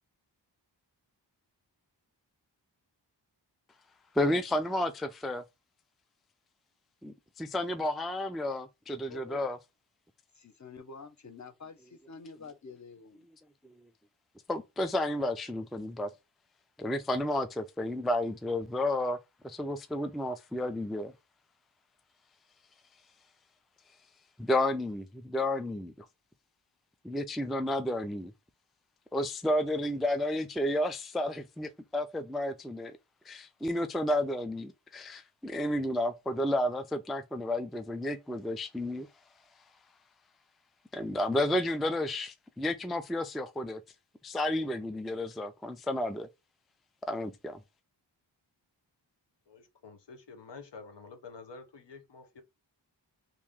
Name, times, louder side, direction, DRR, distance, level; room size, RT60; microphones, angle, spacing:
voice 1, 4.1-5.4 7.0-9.6 13.6-13.7 14.5-16.1 16.8-19.2 19.4-21.1 24.4-26.1 27.0-28.3 29.1-32.9 33.3-39.1 40.9-43.8 44.2-46.3 47.1-47.6, left 1 dB, ahead, 0.3 m, -31 dB
voice 2, 9.1-9.4 10.3-13.3, left 4 dB, 40° left, 0.8 m, -48 dB
voice 3, 49.5-52.4, left 4 dB, 70° left, 0.8 m, -49 dB
3.0 x 2.6 x 3.5 m
wide cardioid pair, 55°, 44 cm